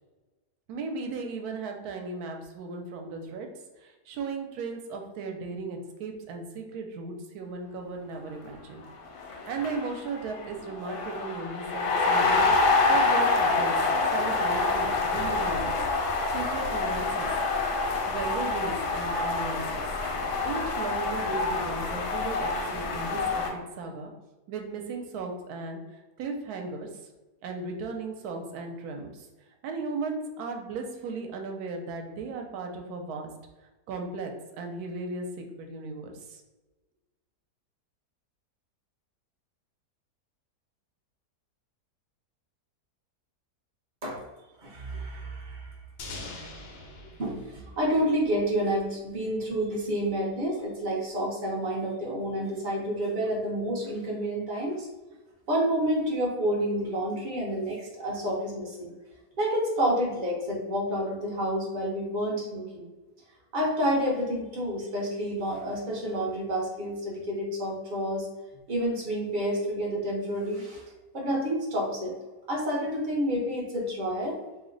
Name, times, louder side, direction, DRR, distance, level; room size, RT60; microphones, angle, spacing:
voice 1, 0.7-3.5 3.8-8.8 9.3-13.7 14.1-15.7 16.3-17.3 18.1-19.8 20.4-23.4 23.8-24.1 24.5-26.9 27.4-29.3 29.6-33.3 33.9-36.4, right 3 dB, 75° right, 3 dB, 1.0 m, -36 dB
sound 1, 8.9-9.0 9.2-23.5, left 3 dB, 85° left, 1.2 m, -27 dB
voice 2, 44.6-45.8 46.2-46.4 47.2-54.9 55.5-58.9 59.4-62.9 63.5-68.3 68.7-70.8 71.1-72.1 72.5-74.4, equal, 55° right, -3 dB, 0.5 m, -29 dB
sound 2, 46.0-48.8, left 2 dB, 70° left, 0.5 m, -43 dB
2.8 x 2.1 x 3.7 m, 1.2 s
omnidirectional pair, 1.8 m